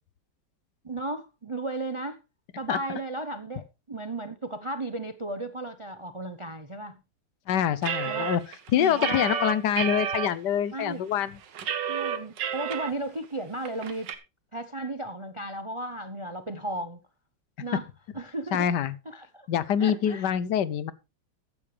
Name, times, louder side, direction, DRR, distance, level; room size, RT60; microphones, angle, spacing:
voice 1, 0.8-2.2 2.6-3.6 3.9-7.0 8.1-8.3 8.7-9.3 10.7-11.0 11.9-14.1 14.5-17.0 17.6-17.9 18.1-18.7 19.0-19.5 19.8-20.3, right 2 dB, 35° right, 0.5 m, -35 dB
voice 2, 7.5-8.4 8.7-11.3 18.5-18.9 19.5-20.9, left 9 dB, 75° left, 1.4 m, -25 dB
sound 1, 7.8-10.3 10.8-10.9 11.2-12.9 13.2-13.3 13.6-14.1, right 8 dB, 85° right, 1.9 m, -30 dB
14.5 x 9.8 x 3.3 m
omnidirectional pair, 1.9 m